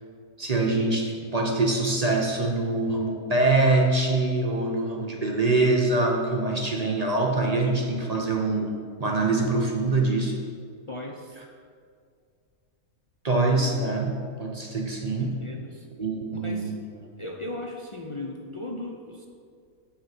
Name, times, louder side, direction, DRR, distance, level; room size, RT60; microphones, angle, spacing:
voice 1, 0.4-8.7 9.0-10.4 13.2-15.3 16.0-16.8, right 2 dB, 35° right, 0 dB, 0.8 m, -24 dB
voice 2, 10.9-11.4 15.2-15.9 16.3-16.7 17.2-19.3, left 2 dB, 50° left, 0 dB, 0.3 m, -37 dB
8.3 x 5.8 x 6.0 m, 2.2 s
omnidirectional pair, 1.5 m